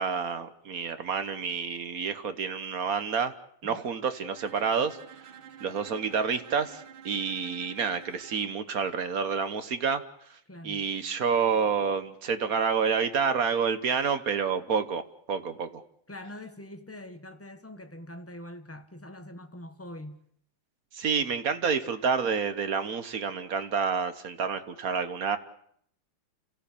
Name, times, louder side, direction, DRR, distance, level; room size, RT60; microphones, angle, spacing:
voice 1, 0.0-3.3 3.6-5.0 5.6-10.0 10.3-10.4 10.6-15.8 20.9-25.4, right 6 dB, 50° right, 1.4 m, -29 dB
voice 2, 3.6-4.0 10.5-10.8 16.1-20.2, left 1 dB, 10° left, 1.1 m, -44 dB
Bowed string instrument, 4.3-8.6, right 8 dB, 65° right, 2.0 m, -49 dB
28.5 x 15.0 x 8.5 m
omnidirectional pair, 2.4 m